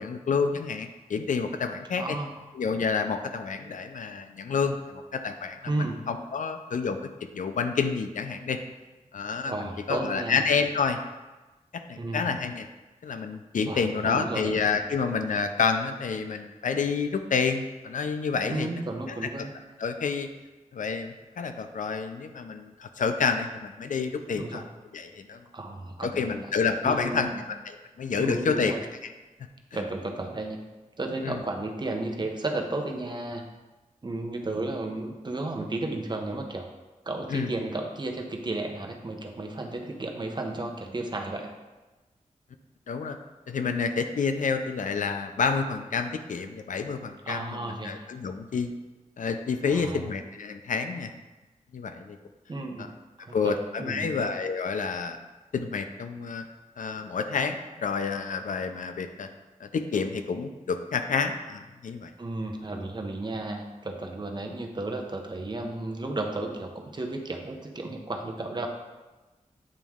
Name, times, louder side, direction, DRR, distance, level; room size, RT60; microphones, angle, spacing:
voice 1, 0.0-2.2 2.6-7.0 7.3-8.6 9.1-11.0 11.7-12.7 13.0-18.7 19.1-19.2 19.8-20.3 20.7-24.6 24.9-25.4 26.0-28.7 29.0-29.1 31.2-31.4 37.3-37.5 42.9-43.2 43.5-48.7 49.2-51.1 51.7-52.2 53.3-55.2 55.5-56.5 56.8-59.3 59.6-62.1, left 5 dB, 80° left, 7 dB, 0.4 m, -29 dB
voice 2, 1.9-2.4 5.7-6.0 9.5-10.5 12.0-12.2 13.7-14.5 18.5-19.5 24.3-24.6 25.5-26.2 26.8-27.4 28.2-28.8 29.7-30.6 31.0-33.4 34.0-36.7 37.0-41.5 47.3-48.0 49.6-50.0 52.5-52.9 53.2-54.1 62.2-68.7, right 2 dB, 35° right, 2 dB, 0.7 m, -33 dB
8.6 x 3.1 x 3.5 m, 1.2 s
wide cardioid pair, 90°, 13 cm